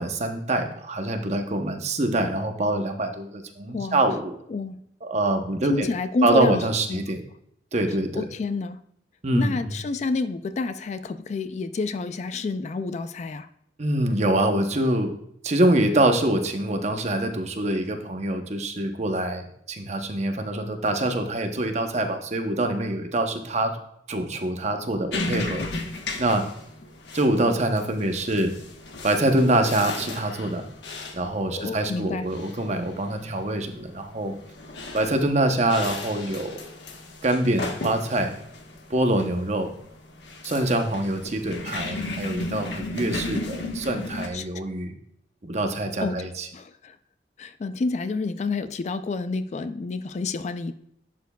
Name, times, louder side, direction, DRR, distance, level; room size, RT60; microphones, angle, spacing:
voice 1, 0.0-4.4 5.0-5.9 6.2-7.2 7.7-8.2 9.2-9.5 13.8-15.1 15.4-23.8 24.1-25.6 26.2-26.5 27.1-28.5 29.0-30.6 31.1-34.3 34.9-36.7 37.2-38.3 38.9-39.7 40.4-44.9 45.4-46.5, right 1 dB, 40° right, 5 dB, 0.8 m, -25 dB
voice 2, 3.7-4.0 4.5-4.8 5.6-6.6 6.9-7.0 8.2-8.8 9.3-13.5 31.5-32.3 44.3-44.5 46.0-47.0 47.4-50.7, left 3 dB, 40° left, 12 dB, 0.3 m, -29 dB
sound 1, 25.1-44.3, left 2 dB, 75° left, 1.1 m, -35 dB
11.0 x 7.0 x 2.3 m, 0.72 s
head